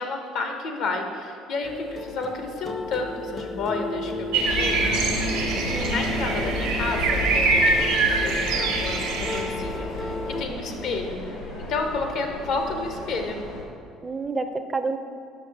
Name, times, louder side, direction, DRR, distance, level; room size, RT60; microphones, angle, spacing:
voice 1, 0.0-4.8 5.7-7.9 8.2-13.4, left 3 dB, 65° left, 4 dB, 0.8 m, -31 dB
sound 1, 1.6-10.4, left 2 dB, 35° left, 0.4 m, -33 dB
sound 2, 4.3-9.4, right 3 dB, 85° right, 1.2 m, -24 dB
sound 3, 4.4-13.6, left 1 dB, 85° left, 1.2 m, -33 dB
voice 2, 5.7-6.0 10.5-10.9 14.0-15.0, right 3 dB, 25° right, 8 dB, 0.4 m, -30 dB
6.4 x 5.6 x 3.3 m, 2.3 s
hypercardioid pair, 70°, 0 cm